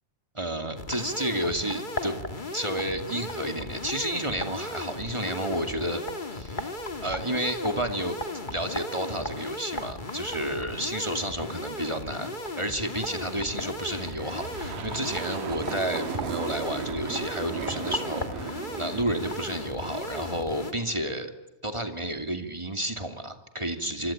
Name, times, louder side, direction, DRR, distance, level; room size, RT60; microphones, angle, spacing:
voice 1, 0.3-2.2 2.5-6.0 6.3-6.7 7.0-8.2 8.5-21.3 21.6-24.1, right 1 dB, 10° right, 6 dB, 1.9 m, -31 dB
sound 1, 0.8-20.7, left 2 dB, 20° left, 1.7 m, -36 dB
sound 2, 13.9-20.4, right 8 dB, 90° right, 3.9 m, -37 dB
26.5 x 25.0 x 8.8 m, 0.99 s
omnidirectional pair, 3.7 m